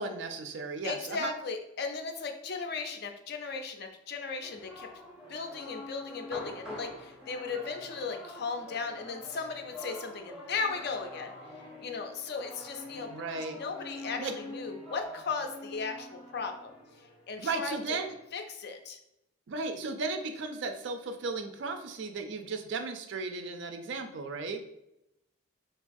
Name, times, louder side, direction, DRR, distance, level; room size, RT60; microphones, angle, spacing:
voice 1, 0.0-1.3 13.1-13.6 14.2-14.3 17.4-18.1 19.5-24.6, right 3 dB, 60° right, 6 dB, 0.3 m, -35 dB
voice 2, 0.8-4.9 5.3-11.3 11.8-16.7 17.3-17.7 18.3-19.0, left 4 dB, 50° left, 5 dB, 0.4 m, -36 dB
sound 1, 4.4-18.3, left 1 dB, 5° right, 0.6 m, -46 dB
3.3 x 2.3 x 2.5 m, 0.83 s
head